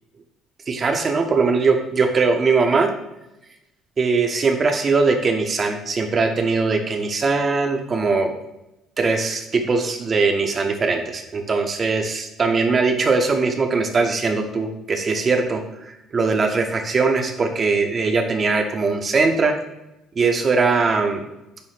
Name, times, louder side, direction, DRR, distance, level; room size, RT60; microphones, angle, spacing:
voice 1, 0.7-2.9 4.0-8.3 9.0-15.6 15.9-19.5 20.2-21.3, right 4 dB, 35° right, 5 dB, 0.6 m, -20 dB
5.5 x 2.0 x 3.2 m, 0.93 s
supercardioid pair, 85°, 0 cm